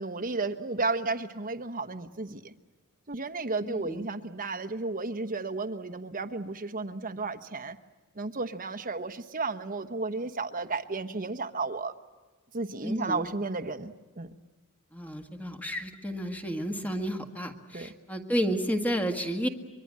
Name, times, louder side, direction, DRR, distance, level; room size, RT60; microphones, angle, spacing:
voice 1, 0.0-2.5 3.1-7.8 8.1-11.9 12.5-14.3 17.7-17.9, right 3 dB, 40° right, 10 dB, 1.1 m, -33 dB
voice 2, 3.6-4.1 12.8-13.4 14.9-19.5, equal, 5° left, 4 dB, 1.7 m, -31 dB
24.5 x 23.0 x 7.5 m, 1.2 s
head